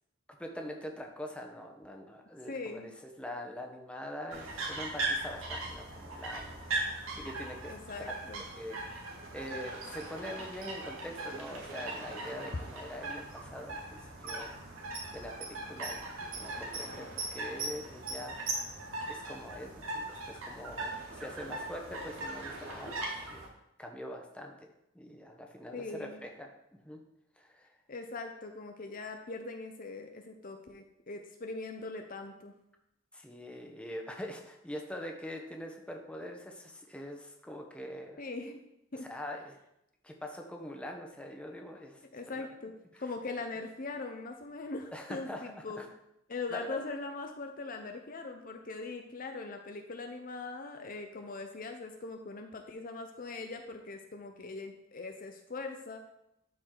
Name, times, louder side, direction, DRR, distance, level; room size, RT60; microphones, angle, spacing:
voice 1, 0.3-7.8 8.4-14.5 15.1-23.4 23.8-24.7 24.9-27.0 27.4-27.7 33.1-38.2 39.1-39.6 40.0-42.0 42.3-42.5 42.9-43.0 44.9-45.9 46.5-46.8, left 1 dB, 5° left, 2 dB, 1.0 m, -44 dB
voice 2, 2.5-3.0 7.7-8.4 25.7-26.2 27.9-32.5 38.2-38.6 38.9-39.1 42.1-42.7 43.0-45.8 46.3-56.0, left 3 dB, 45° left, 4 dB, 0.7 m, -41 dB
sound 1, 4.3-23.5, right 2 dB, 80° right, 2.0 m, -39 dB
12.0 x 4.9 x 3.9 m, 0.82 s
head